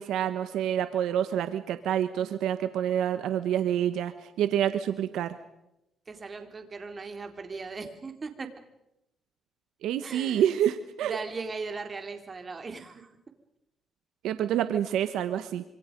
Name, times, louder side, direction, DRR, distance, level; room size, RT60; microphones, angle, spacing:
voice 1, 0.0-5.4 9.8-11.2 14.2-15.6, right 10 dB, 85° right, 10 dB, 1.2 m, -27 dB
voice 2, 6.1-8.5 10.0-10.4 11.0-13.1, right 4 dB, 35° right, 6 dB, 3.6 m, -38 dB
26.5 x 25.5 x 5.3 m, 0.87 s
cardioid pair, 90°, 0 cm